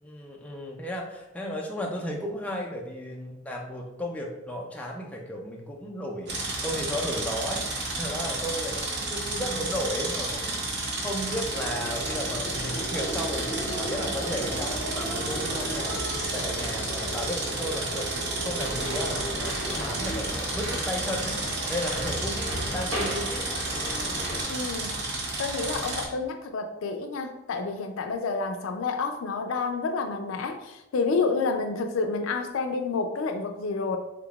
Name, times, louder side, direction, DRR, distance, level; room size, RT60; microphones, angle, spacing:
voice 1, 0.0-7.6 8.0-21.4 21.7-23.6, equal, 5° left, -1 dB, 0.4 m, -34 dB
sound 1, 6.3-26.1, right 2 dB, 60° right, 0.7 m, -32 dB
sound 2, 11.3-20.6, right 1 dB, 20° right, 1.2 m, -36 dB
sound 3, 18.6-24.4, equal, 85° right, 1.2 m, -35 dB
voice 2, 24.5-25.0 25.4-34.0, left 4 dB, 85° left, 6 dB, 0.4 m, -29 dB
3.7 x 3.3 x 2.3 m, 0.96 s
head